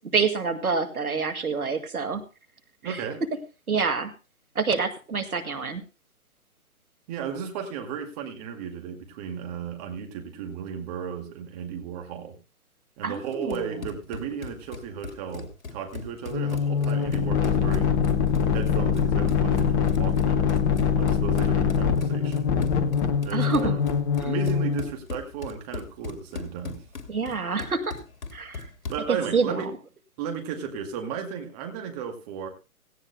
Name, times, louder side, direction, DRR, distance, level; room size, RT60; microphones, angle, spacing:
voice 1, 0.1-2.2 2.8-3.0 3.7-4.1 4.6-5.8 13.0-13.8 23.3-23.7 24.2-24.3 27.1-28.0 28.3-28.7 29.1-29.7, right 5 dB, 80° right, 7 dB, 2.2 m, -27 dB
voice 2, 2.8-3.2 7.1-12.4 13.0-18.0 18.5-20.4 20.9-22.5 23.2-23.8 24.2-26.8 28.9-29.7 30.2-32.5, right 7 dB, 25° right, 4 dB, 2.2 m, -34 dB
Run, 13.3-29.1, left 4 dB, 65° left, 2.7 m, -39 dB
sound 1, 16.3-24.9, left 6 dB, 15° left, 0.8 m, -23 dB
17.0 x 16.5 x 2.2 m, 0.31 s
figure-of-eight pair, 135°, 43 cm